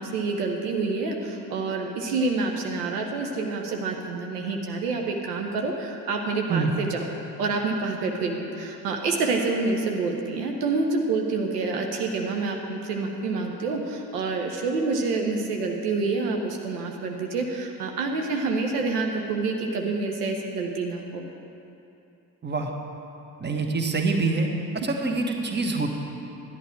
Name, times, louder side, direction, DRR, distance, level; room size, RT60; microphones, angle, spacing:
voice 1, 0.0-7.0 7.4-21.2, right 3 dB, 70° right, 2 dB, 1.0 m, -27 dB
voice 2, 23.4-24.5 24.8-26.0, right 3 dB, 20° right, 3 dB, 1.2 m, -25 dB
11.0 x 11.0 x 4.4 m, 2.8 s
figure-of-eight pair, 45°, 48 cm